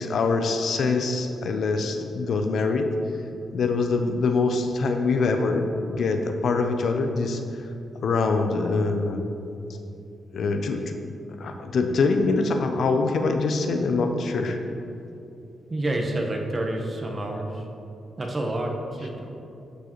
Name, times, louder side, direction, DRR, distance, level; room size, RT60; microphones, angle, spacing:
voice 1, 0.0-2.9 3.5-7.4 8.0-9.3 10.3-10.9 11.4-14.6, left 3 dB, 70° left, 5 dB, 0.5 m, -24 dB
voice 2, 15.7-17.7 18.2-19.3, right 1 dB, 35° right, 1 dB, 1.1 m, -28 dB
11.5 x 4.7 x 3.1 m, 2.7 s
cardioid pair, 75°, 0 cm